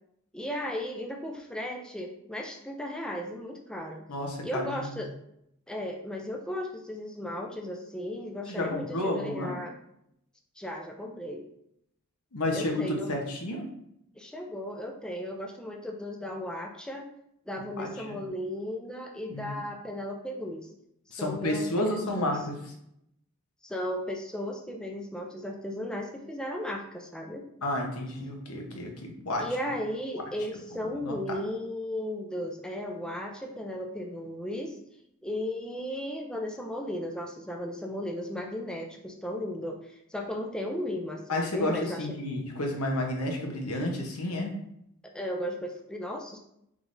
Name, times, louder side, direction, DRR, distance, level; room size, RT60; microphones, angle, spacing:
voice 1, 0.3-4.0 4.4-5.1 5.7-9.7 10.6-11.5 12.5-13.1 14.2-17.1 17.5-20.7 21.1-22.3 23.6-27.5 29.4-34.8 35.2-42.0 45.1-46.4, left 1 dB, 5° left, 1 dB, 0.3 m, -35 dB
voice 2, 4.1-5.0 8.5-9.6 12.3-13.7 17.8-18.2 19.3-19.6 21.1-22.4 27.6-29.4 31.0-31.4 41.3-44.5, left 1 dB, 85° left, 1 dB, 1.0 m, -31 dB
4.7 x 3.8 x 2.6 m, 0.77 s
head